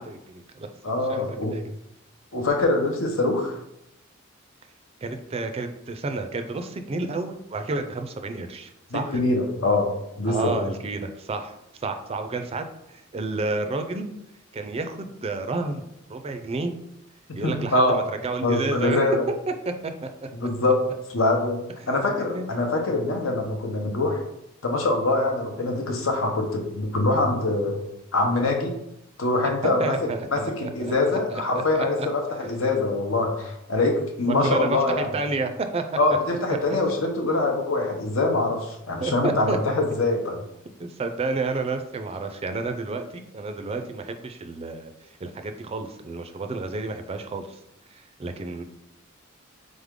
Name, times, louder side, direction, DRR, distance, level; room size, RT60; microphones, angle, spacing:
voice 1, 0.0-0.7 1.1-1.2 1.5-1.6 5.0-9.2 10.3-11.5 11.8-12.7 13.1-14.1 14.5-15.8 16.1-16.7 17.4-19.0 19.7-20.1 22.2-22.5 29.8-30.9 31.3-32.1 34.3-35.8 39.0-39.6 40.8-44.9 45.2-47.6 47.9-48.6, right 3 dB, 30° right, 7 dB, 0.4 m, -30 dB
voice 2, 0.8-1.5 2.3-3.6 8.9-10.6 17.3-18.0 18.4-19.2 20.3-20.8 21.1-24.2 24.6-27.8 28.1-28.7 29.2-29.9 30.3-35.1 36.0-40.4, left 2 dB, 85° left, 2 dB, 0.9 m, -24 dB
3.7 x 3.5 x 3.6 m, 0.83 s
head